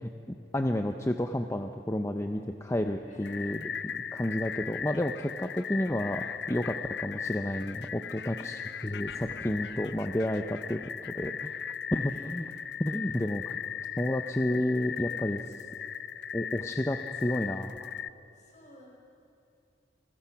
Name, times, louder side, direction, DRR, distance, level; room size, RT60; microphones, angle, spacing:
voice 1, 0.0-10.8 11.1-11.6 11.9-12.4 12.8-13.6 14.0-15.5 16.3-17.9, left 1 dB, 15° left, 5 dB, 0.7 m, -31 dB
voice 2, 3.1-3.6 8.1-8.9 12.1-12.3 18.3-18.9, left 1 dB, 40° left, -1 dB, 5.9 m, -55 dB
sound 1, 3.2-18.1, left 8 dB, 65° left, 0.5 m, -38 dB
Explosion, 9.0-11.1, right 1 dB, 55° right, 2.0 m, -55 dB
29.5 x 21.5 x 5.9 m, 2.7 s
head